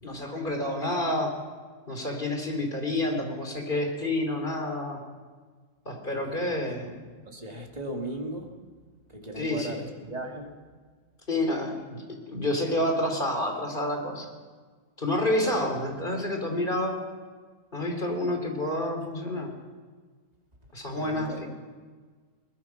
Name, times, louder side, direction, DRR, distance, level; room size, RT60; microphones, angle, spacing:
voice 1, 0.0-1.3 1.9-5.0 5.8-7.0 9.4-9.8 11.3-14.3 15.0-17.0 17.7-19.5 20.7-21.5, left 1 dB, 30° left, 3 dB, 3.4 m, -29 dB
voice 2, 6.2-6.6 7.3-8.6 9.1-10.6 15.4-15.6 20.9-21.4, right 1 dB, 25° right, 1 dB, 2.6 m, -37 dB
22.0 x 20.0 x 5.9 m, 1.5 s
omnidirectional pair, 1.8 m